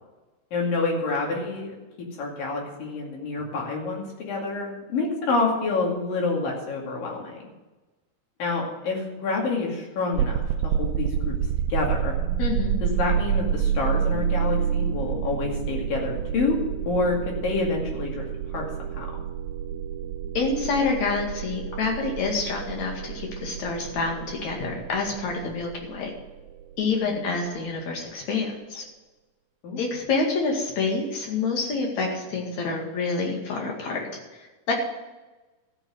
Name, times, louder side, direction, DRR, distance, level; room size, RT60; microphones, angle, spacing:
voice 1, 0.5-1.7 2.2-7.4 8.4-11.4 11.7-12.1 12.8-16.6 16.9-18.3 18.5-19.1 27.0-27.3 29.6-29.8, left 3 dB, 75° left, -1 dB, 4.1 m, -28 dB
sound 1, 10.1-27.1, right 8 dB, 75° right, 1.8 m, -29 dB
voice 2, 12.4-12.8 20.4-26.1 26.8-28.8 29.8-34.0 34.7-34.8, left 4 dB, 55° left, 0 dB, 3.3 m, -27 dB
13.5 x 5.9 x 7.9 m, 1.1 s
omnidirectional pair, 3.9 m